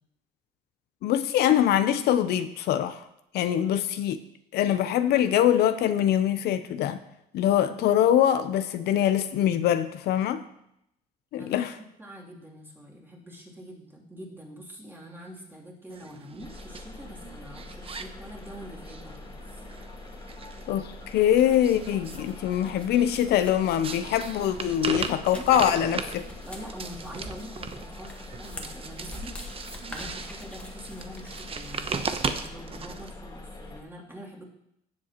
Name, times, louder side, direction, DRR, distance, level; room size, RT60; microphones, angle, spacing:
voice 1, 1.0-3.0 3.3-4.2 4.5-7.0 7.3-10.4 11.3-11.7 20.7-26.3, left 10 dB, 75° left, 10 dB, 0.7 m, -23 dB
voice 2, 11.4-11.7 12.0-19.6 25.1-25.4 26.4-34.5, equal, 10° right, -4 dB, 3.0 m, -45 dB
sound 1, 15.9-33.1, right 5 dB, 35° right, 0.9 m, -38 dB
sound 2, 16.4-33.8, left 2 dB, 25° left, 1.9 m, -44 dB
sound 3, 21.1-32.3, left 1 dB, 5° left, 1.7 m, -47 dB
17.0 x 7.5 x 3.0 m, 0.79 s
cardioid pair, 110°, 17 cm